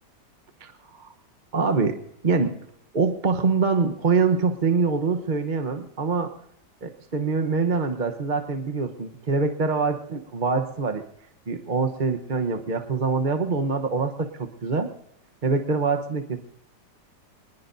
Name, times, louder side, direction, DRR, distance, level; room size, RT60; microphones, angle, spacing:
voice 1, 0.6-1.1 1.5-2.6 2.9-6.3 6.8-11.0 11.5-14.9 15.4-16.4, right 4 dB, 35° right, 7 dB, 0.9 m, -24 dB
24.5 x 20.5 x 2.7 m, 0.75 s
omnidirectional pair, 1.9 m